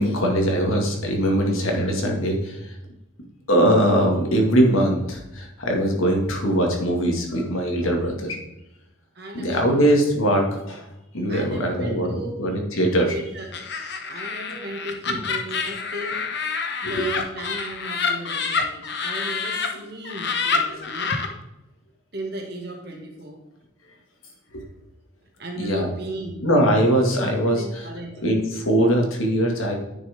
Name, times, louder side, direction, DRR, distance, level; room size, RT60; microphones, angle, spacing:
voice 1, 0.0-2.6 3.5-8.4 9.3-10.8 11.1-12.1 12.4-13.1 17.0-17.1 25.6-25.9 26.4-27.8 28.2-29.8, equal, 80° left, 1 dB, 2.1 m, -21 dB
voice 2, 9.1-9.9 11.3-12.4 13.0-13.6 14.1-16.3 16.8-21.2 22.1-23.4 25.4-26.4 27.1-28.2, right 1 dB, 50° right, 1 dB, 1.9 m, -36 dB
Laughter, 13.5-19.7 20.0-21.3, left 5 dB, 50° left, 1.1 m, -27 dB
9.9 x 6.7 x 3.6 m, 0.93 s
head